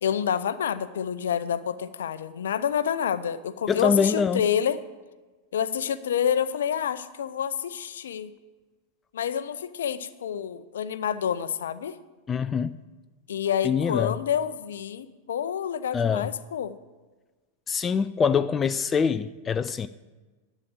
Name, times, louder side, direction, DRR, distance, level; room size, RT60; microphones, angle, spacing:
voice 1, 0.0-4.8 5.5-8.3 9.1-12.0 13.3-16.7, left 8 dB, 65° left, 0.6 m, -28 dB
voice 2, 3.7-4.4 12.3-12.8 13.6-14.2 15.9-16.3 17.7-19.9, left 6 dB, 20° left, 0.4 m, -24 dB
11.0 x 7.5 x 7.7 m
figure-of-eight pair, 90°, 0 cm